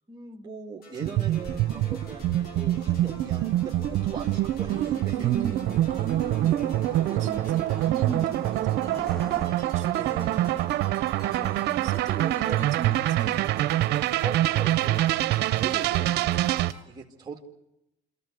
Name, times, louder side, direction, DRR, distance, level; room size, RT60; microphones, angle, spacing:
voice 1, 0.1-5.3 9.9-10.7 11.2-12.6 14.2-16.3 16.9-17.4, right 4 dB, 25° right, 0 dB, 2.1 m, -40 dB
sound 1, 0.8-16.8, left 2 dB, 65° left, 6.2 m, -49 dB
sound 2, 1.0-16.7, right 14 dB, 80° right, 0.7 m, -25 dB
sound 3, 1.4-9.5, right 2 dB, ahead, 2.1 m, -44 dB
voice 2, 4.7-10.6 11.3-14.0, right 7 dB, 45° right, 6 dB, 2.8 m, -37 dB
25.0 x 14.0 x 9.3 m, 0.87 s
cardioid pair, 110°, 17 cm